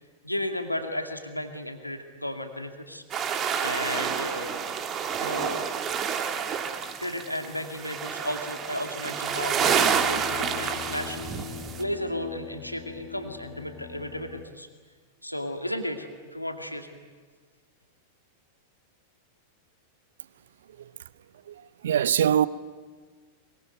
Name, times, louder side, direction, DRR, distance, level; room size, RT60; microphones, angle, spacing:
voice 1, 0.2-3.0 3.6-4.6 5.2-5.6 7.0-14.7 15.2-17.1, left 1 dB, 90° left, 2.2 m, -34 dB
sound 1, 3.1-11.8, right 7 dB, 30° right, 2.0 m, -29 dB
sound 2, 9.2-14.5, left 11 dB, 40° left, 1.8 m, -42 dB
voice 2, 21.5-22.5, right 9 dB, 60° right, 0.7 m, -23 dB
23.5 x 23.0 x 9.2 m
figure-of-eight pair, 90°, 0 cm